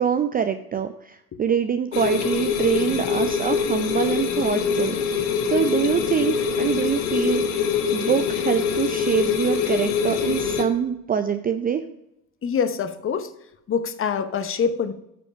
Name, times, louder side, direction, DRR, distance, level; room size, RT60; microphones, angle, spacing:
voice 1, 0.0-11.8, right 8 dB, 20° right, 8 dB, 0.4 m, -25 dB
sound 1, 1.9-10.6, left 6 dB, 80° left, 1.3 m, -24 dB
voice 2, 12.4-13.3 13.7-14.9, left 6 dB, 30° left, 11 dB, 0.9 m, -25 dB
8.9 x 5.2 x 5.6 m, 0.81 s
hypercardioid pair, 80°, 45 cm